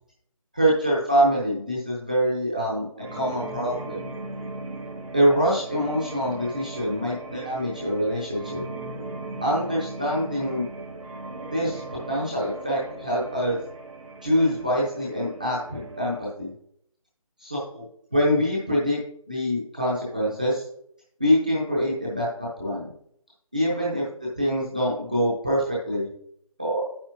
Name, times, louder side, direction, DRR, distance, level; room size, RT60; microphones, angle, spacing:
voice 1, 0.5-4.0 5.1-8.6 9.4-10.7 11.5-13.6 14.2-16.5 17.4-19.0 19.3-20.7 21.2-22.9 23.5-26.1 26.6-26.9, equal, 15° right, -7 dB, 0.7 m, -25 dB
sound 1, 3.0-16.3, right 2 dB, 70° right, 2.0 m, -38 dB
9.0 x 8.6 x 2.6 m, 0.71 s
figure-of-eight pair, 180°, 18 cm